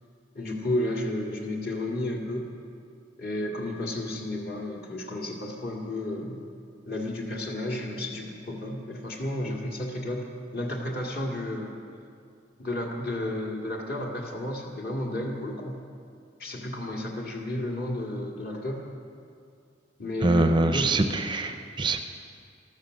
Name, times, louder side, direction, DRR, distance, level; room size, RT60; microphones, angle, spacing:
voice 1, 0.3-2.5 3.2-6.4 6.9-10.3 10.5-11.7 12.6-15.8 16.4-18.9 20.0-21.0, left 1 dB, 50° left, 0 dB, 2.2 m, -32 dB
voice 2, 20.2-22.0, right 2 dB, 25° right, 7 dB, 0.5 m, -24 dB
13.5 x 13.0 x 6.5 m, 2.3 s
head